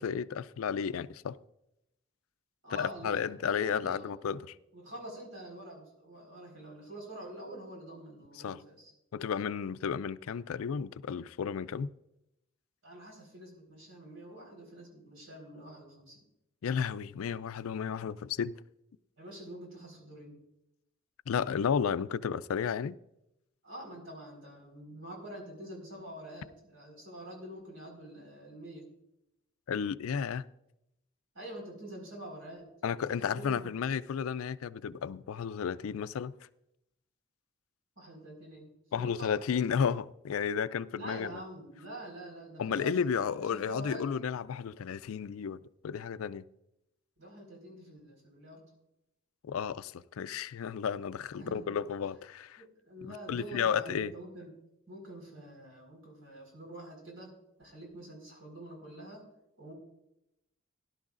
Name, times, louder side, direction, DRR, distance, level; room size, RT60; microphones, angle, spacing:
voice 1, 0.0-1.3 2.7-4.5 8.4-8.6 9.1-11.9 16.6-18.5 21.3-23.0 29.7-30.5 32.8-36.3 38.9-41.3 42.6-46.4 49.4-52.6 53.3-54.1, left 7 dB, 80° left, 0.4 m, -33 dB
voice 2, 2.6-4.4 4.7-8.9 12.8-16.2 19.2-20.4 23.6-28.9 31.3-32.7 33.3-33.7 38.0-38.7 39.0-39.3 40.9-43.0 43.3-44.1 47.2-48.6 51.4-51.7 52.6-54.5 54.9-57.3 57.6-59.2 59.6-59.7, right 1 dB, 75° right, 4.4 m, -46 dB
17.0 x 11.5 x 2.5 m
head